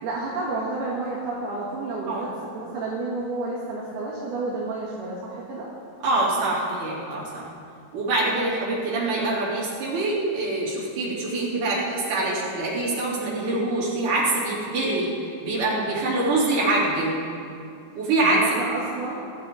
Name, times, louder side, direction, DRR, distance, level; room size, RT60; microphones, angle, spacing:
voice 1, 0.0-5.7 18.2-19.3, right 3 dB, 60° right, -6 dB, 3.5 m, -30 dB
voice 2, 6.0-7.5 7.9-17.2 18.0-18.6, right 2 dB, 45° right, -7 dB, 4.3 m, -25 dB
21.5 x 13.0 x 4.0 m, 2.5 s
omnidirectional pair, 5.9 m